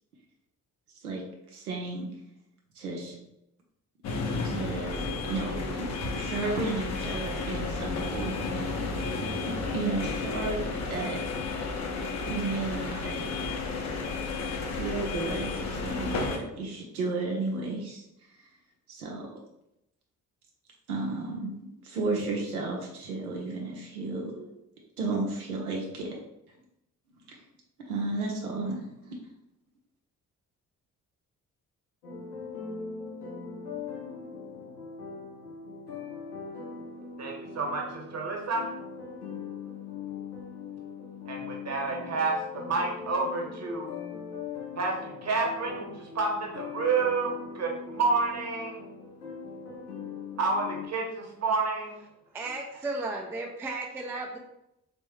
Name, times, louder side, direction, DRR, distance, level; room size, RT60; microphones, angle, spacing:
voice 1, 1.5-2.1 2.8-3.2 4.4-5.9 6.1-8.8 9.4-10.6 10.9-11.2 12.3-13.2 14.7-18.0 18.9-19.3 20.9-21.5 21.8-24.5 25.0-26.2 27.3-27.4 27.9-29.2, right 3 dB, 85° right, -1 dB, 0.6 m, -33 dB
sound 1, 4.0-16.4, left 3 dB, 40° left, 0.7 m, -32 dB
sound 2, 32.0-50.9, left 5 dB, 85° left, 0.6 m, -40 dB
voice 2, 37.2-38.7 41.3-43.9 44.8-48.8 50.4-51.9, right 3 dB, 35° right, 0 dB, 1.0 m, -29 dB
voice 3, 52.3-54.4, right 2 dB, 5° right, 1 dB, 0.3 m, -34 dB
3.4 x 2.2 x 3.1 m, 0.83 s
figure-of-eight pair, 40°, 44 cm